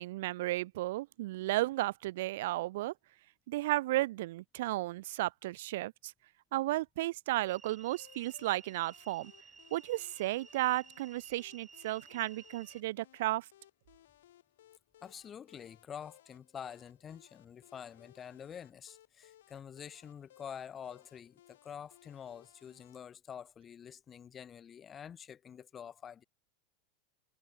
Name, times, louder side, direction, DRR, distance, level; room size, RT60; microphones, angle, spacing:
voice 1, 0.0-2.9 3.5-6.1 6.5-9.3 9.7-13.5, right 17 dB, 60° right, 0.5 m, -34 dB
sound 1, 7.5-12.8, right 5 dB, 10° right, 1.6 m, -56 dB
sound 2, 8.0-23.0, left 13 dB, 85° left, 2.1 m, -63 dB
voice 2, 15.0-26.2, left 8 dB, 20° left, 0.6 m, -47 dB
supercardioid pair, 170°, 0 cm